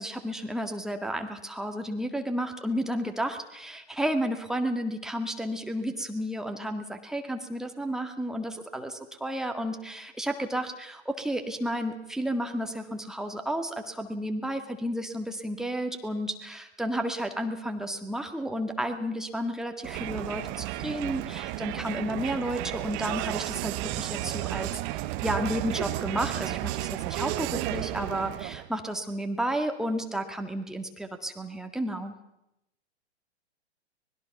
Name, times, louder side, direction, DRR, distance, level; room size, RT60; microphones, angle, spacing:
voice 1, 0.0-32.1, equal, ahead, 4 dB, 1.8 m, -32 dB
Crowd, 19.8-28.7, right 17 dB, 30° right, 0.9 m, -33 dB
24.5 x 20.5 x 6.0 m, 0.87 s
figure-of-eight pair, 110°, 34 cm